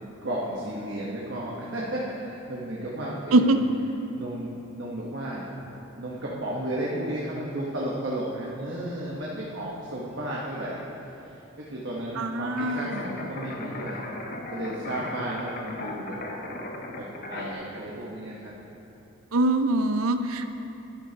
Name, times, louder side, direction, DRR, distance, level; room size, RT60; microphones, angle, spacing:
voice 1, 0.2-3.6 4.1-5.6 6.0-10.8 11.2-14.0 14.5-16.2 17.0-18.5, right 1 dB, 55° right, -5 dB, 1.1 m, -33 dB
voice 2, 3.3-3.6 12.2-13.0 19.3-20.5, right 2 dB, 80° right, 9 dB, 0.5 m, -23 dB
sound 1, 12.6-17.5, left 2 dB, 40° left, 0.8 m, -37 dB
11.5 x 11.5 x 2.9 m, 2.9 s
head